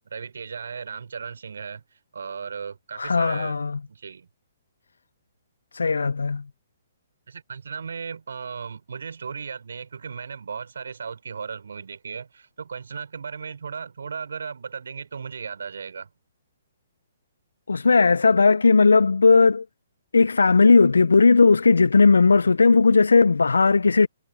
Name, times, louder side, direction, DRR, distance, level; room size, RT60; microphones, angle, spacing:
voice 1, 0.1-3.6 3.9-4.3 7.3-16.1, right 6 dB, 70° right, 4.7 m, -36 dB
voice 2, 3.0-3.8 5.7-6.4 17.7-19.6 20.1-24.1, left 4 dB, 80° left, 0.6 m, -17 dB
figure-of-eight pair, 130°, 0 cm